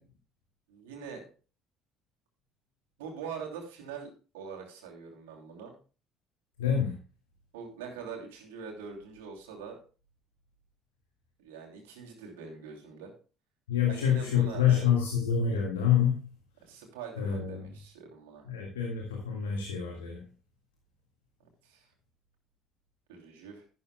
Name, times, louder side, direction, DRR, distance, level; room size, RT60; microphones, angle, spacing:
voice 1, 0.7-1.2 3.0-5.7 7.5-9.8 11.4-13.1 13.9-14.9 16.6-18.4 21.4-21.9 23.1-23.6, right 6 dB, 75° right, 1 dB, 2.8 m, -43 dB
voice 2, 6.6-6.9 13.7-16.2 17.2-17.6 18.5-20.2, left 8 dB, 85° left, 1 dB, 1.8 m, -27 dB
12.0 x 12.0 x 2.2 m, 0.36 s
hypercardioid pair, 55°, 0 cm